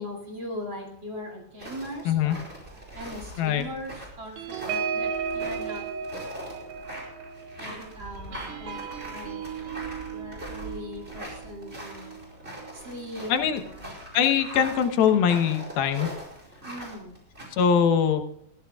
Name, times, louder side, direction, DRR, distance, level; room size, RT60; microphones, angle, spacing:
voice 1, 0.0-5.9 6.2-6.8 7.6-9.8 10.1-12.2 12.7-13.9 16.6-17.2, left 1 dB, 35° right, 1 dB, 2.6 m, -40 dB
sound 1, 1.6-17.5, right 1 dB, 15° right, 5.0 m, -42 dB
sound 2, 4.4-13.3 13.7-13.9 14.2-14.5, right 6 dB, 85° right, 3.4 m, -36 dB
voice 2, 13.3-13.6 14.1-16.1 17.6-18.2, left 8 dB, 80° left, 7 dB, 2.9 m, -22 dB
21.5 x 15.0 x 2.4 m, 0.71 s
omnidirectional pair, 4.3 m